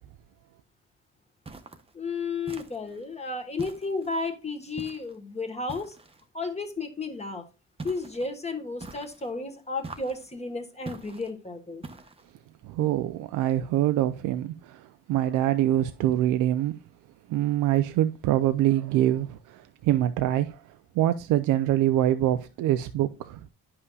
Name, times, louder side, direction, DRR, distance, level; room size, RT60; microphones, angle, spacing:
sound 1, 1.4-1.9 2.5-3.0 3.6-4.2 4.8-5.2 5.7-6.2 7.8-8.3 8.8-9.3 9.8-10.3 10.8-11.3 11.8-12.3, right 3 dB, 20° right, 0.8 m, -43 dB
voice 1, 1.9-6.0 6.3-7.4 7.8-11.8, left 3 dB, 20° left, 1.3 m, -33 dB
voice 2, 12.6-16.8 17.3-23.5, right 13 dB, 85° right, 0.5 m, -25 dB
9.5 x 5.6 x 2.3 m
cardioid pair, 90°, 30 cm